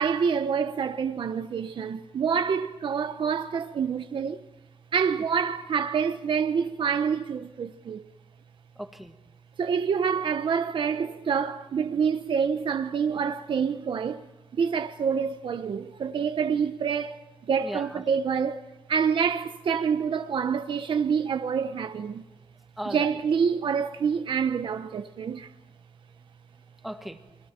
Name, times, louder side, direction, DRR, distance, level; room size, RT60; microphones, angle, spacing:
voice 1, 0.0-4.5 4.9-8.0 9.6-14.2 14.5-18.6 18.9-22.2 22.9-25.5, right 6 dB, 60° right, 1.0 m, -27 dB
voice 2, 8.8-9.2 17.6-18.0 22.8-23.2 26.6-27.4, equal, ahead, 1.8 m, -38 dB
30.0 x 23.0 x 4.5 m
wide cardioid pair, 120°, 10 cm